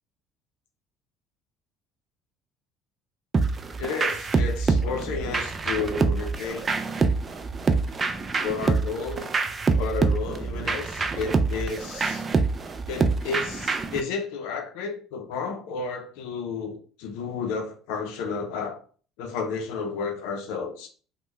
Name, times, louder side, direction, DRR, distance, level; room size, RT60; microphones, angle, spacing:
sound 1, 3.3-14.0, right 4 dB, 30° right, 0.3 m, -26 dB
voice 1, 3.8-6.7 8.4-9.3 9.8-12.3 12.9-18.8 19.2-20.9, left 5 dB, 85° left, 5 dB, 0.5 m, -32 dB
3.3 x 2.1 x 3.1 m, 0.42 s
supercardioid pair, 105°, 0 cm